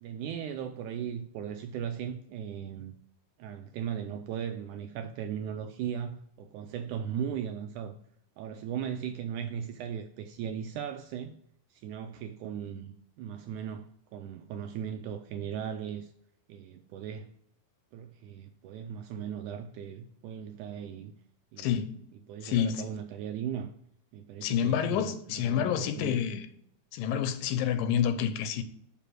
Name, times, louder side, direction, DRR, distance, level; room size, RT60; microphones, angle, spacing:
voice 1, 0.0-2.9 3.4-8.0 8.4-11.4 11.7-16.1 16.5-17.3 17.9-21.1 21.5-21.8 22.3-23.7 24.1-26.2, right 8 dB, 80° right, 1.8 m, -37 dB
voice 2, 21.6-22.0 22.4-22.8 24.4-26.4 26.9-28.6, left 9 dB, 85° left, 2.5 m, -28 dB
6.9 x 4.9 x 6.1 m
omnidirectional pair, 3.9 m